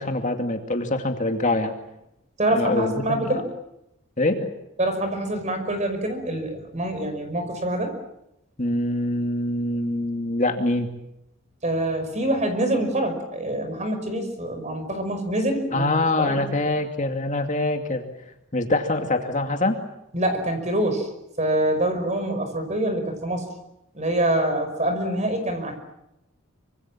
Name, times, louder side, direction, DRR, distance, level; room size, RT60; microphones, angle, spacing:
voice 1, 0.0-1.7 2.5-3.4 4.2-4.5 8.6-10.9 15.7-18.0 18.5-19.8, left 2 dB, 35° left, 5 dB, 2.4 m, -24 dB
voice 2, 2.4-3.5 4.8-7.9 11.6-15.8 16.2-16.5 20.1-21.1 21.4-23.5 23.9-25.8, right 1 dB, 35° right, 7 dB, 5.5 m, -25 dB
26.0 x 25.5 x 7.4 m, 0.84 s
head